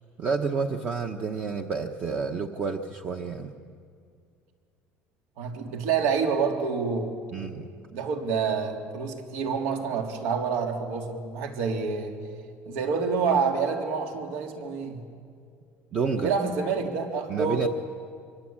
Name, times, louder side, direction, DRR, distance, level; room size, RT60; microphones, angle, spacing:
voice 1, 0.2-3.5 7.3-7.7 15.9-16.3 17.3-17.7, right 5 dB, 30° right, 5 dB, 0.9 m, -29 dB
voice 2, 5.4-7.2 7.9-12.2 12.7-15.0 16.2-17.7, right 5 dB, 80° right, 3 dB, 3.5 m, -27 dB
25.5 x 25.0 x 8.8 m, 2.3 s
cardioid pair, 175°, 5 cm